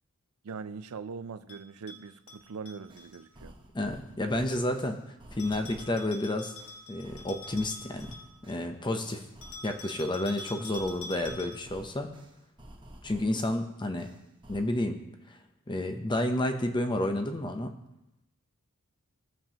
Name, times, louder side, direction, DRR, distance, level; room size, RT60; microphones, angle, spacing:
voice 1, 0.4-3.6, right 5 dB, 80° right, 0.5 m, -41 dB
Bell, 1.5-3.2 5.4-8.6 9.4-11.8, left 2 dB, 70° left, 1.5 m, -46 dB
sound 1, 2.4-2.5 2.9-6.1 6.6-9.8 10.3-13.5 14.0-14.8, right 1 dB, 20° right, 1.0 m, -52 dB
voice 2, 3.7-5.0 5.3-6.6 6.9-8.2 8.5-9.2 9.6-12.1 13.0-14.1 14.5-15.0 15.3-15.4 15.7-17.7, left 1 dB, 20° left, 0.7 m, -30 dB
16.5 x 7.4 x 2.9 m
head